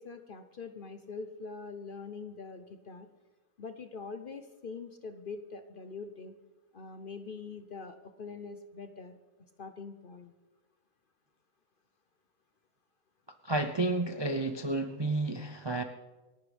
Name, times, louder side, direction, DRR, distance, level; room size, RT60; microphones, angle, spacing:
voice 1, 0.0-3.1 3.6-6.3 6.7-9.2 9.6-10.3, left 4 dB, 50° left, 9 dB, 0.7 m, -43 dB
voice 2, 13.4-15.8, right 2 dB, 40° right, 6 dB, 0.4 m, -31 dB
27.0 x 11.5 x 3.3 m, 1.2 s
omnidirectional pair, 1.5 m